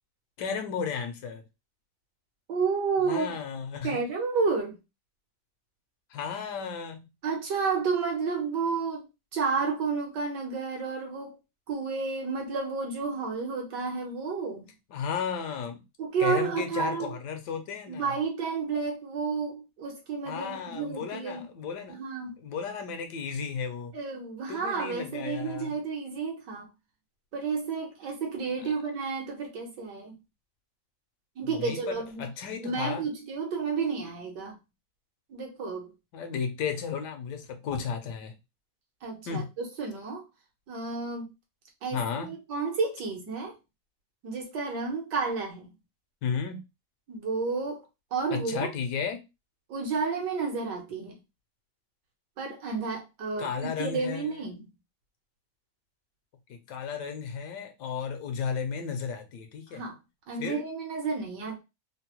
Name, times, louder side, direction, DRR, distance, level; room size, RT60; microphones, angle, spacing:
voice 1, 0.4-1.4 3.0-4.0 6.1-7.1 14.9-15.8 16.2-18.2 20.3-22.0 22.4-23.9 24.5-25.7 31.4-33.1 36.1-38.3 39.3-39.5 41.9-42.3 46.2-46.6 48.3-49.2 53.4-54.4 56.5-59.8 60.4-60.7, left 6 dB, 80° left, 1.3 m, -34 dB
voice 2, 2.5-3.3 3.8-4.8 7.2-11.4 11.7-14.7 16.0-17.1 17.9-21.5 21.9-22.4 23.9-26.7 27.3-30.2 31.4-32.2 32.6-34.6 35.3-35.9 39.0-40.2 40.7-41.3 41.8-43.5 44.2-45.7 47.1-47.8 48.1-48.7 49.7-51.2 52.4-53.5 53.8-54.7 59.7-60.0 60.3-61.6, right 5 dB, 80° right, 1.6 m, -31 dB
3.9 x 2.0 x 2.8 m
omnidirectional pair, 1.8 m